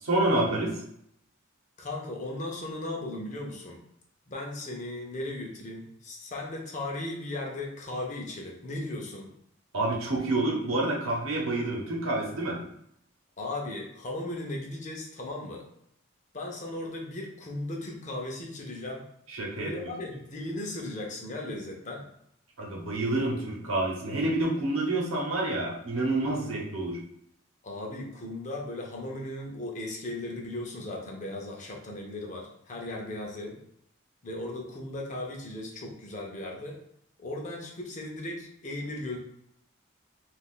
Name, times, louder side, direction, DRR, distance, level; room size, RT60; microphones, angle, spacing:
voice 1, 0.0-0.7 9.7-12.6 19.3-19.9 22.6-27.0, right 2 dB, 80° right, -2 dB, 0.9 m, -28 dB
voice 2, 1.8-3.8 4.3-9.3 13.4-15.7 16.3-19.0 19.6-22.1 27.6-33.6 34.2-36.8 37.2-39.2, left 1 dB, 35° left, 0 dB, 0.6 m, -37 dB
2.5 x 2.4 x 3.6 m, 0.73 s
head